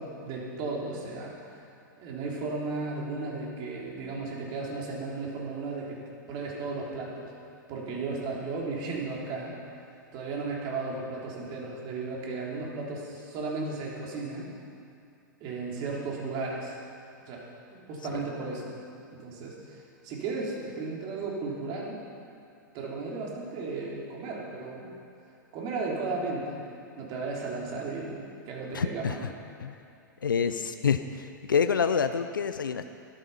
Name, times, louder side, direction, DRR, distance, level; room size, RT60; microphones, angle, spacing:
voice 1, 0.0-1.6 2.0-6.0 6.3-7.3 7.7-9.6 10.1-14.5 15.4-16.8 17.3-17.4 17.7-18.7 19.2-22.0 22.7-24.9 25.5-26.7 26.9-29.3, right 3 dB, 40° right, -3 dB, 3.5 m, -35 dB
voice 2, 28.7-29.2 29.6-29.7 30.2-32.9, left 6 dB, 80° left, 9 dB, 0.6 m, -27 dB
13.0 x 12.5 x 5.6 m, 2.5 s
figure-of-eight pair, 105°, 11 cm